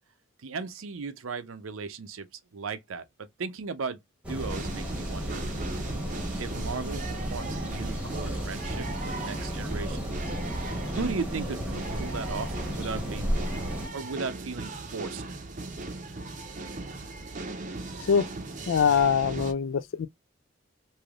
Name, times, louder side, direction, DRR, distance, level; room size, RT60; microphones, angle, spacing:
voice 1, 0.4-2.3 2.5-4.0 4.3-5.4 6.4-10.2 10.9-13.4 13.9-15.2, right 4 dB, 80° right, 0.6 m, -36 dB
sound 1, 4.2-13.9, equal, 5° right, 1.0 m, -33 dB
sound 2, 4.4-19.5, right 3 dB, 35° right, 0.6 m, -38 dB
voice 2, 18.7-20.1, left 6 dB, 70° left, 0.4 m, -23 dB
3.3 x 2.7 x 2.4 m
head